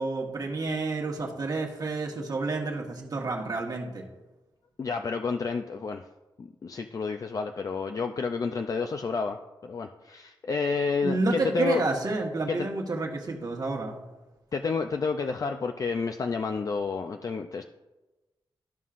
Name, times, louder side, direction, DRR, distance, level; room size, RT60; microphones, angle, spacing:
voice 1, 0.0-4.1 11.0-14.0, right 3 dB, 50° right, 0 dB, 1.4 m, -29 dB
voice 2, 4.8-6.0 6.4-9.4 9.6-11.8 12.5-12.7 14.5-17.6, left 4 dB, 45° left, 6 dB, 0.4 m, -30 dB
13.0 x 5.5 x 2.5 m, 1.1 s
wide cardioid pair, 105°, 8 cm